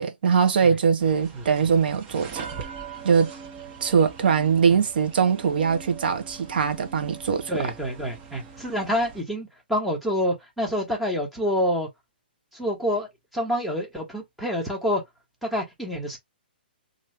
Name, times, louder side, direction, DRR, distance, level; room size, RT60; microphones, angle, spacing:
voice 1, 0.0-2.5 3.0-3.3 3.8-7.5, right 6 dB, 65° right, 0.8 m, -22 dB
sound 1, 1.0-9.2, right 6 dB, 30° right, 1.0 m, -42 dB
voice 2, 7.5-11.9 12.5-15.0 15.4-16.2, equal, ahead, 1.0 m, -27 dB
2.8 x 2.6 x 3.1 m
hypercardioid pair, 140°, 6 cm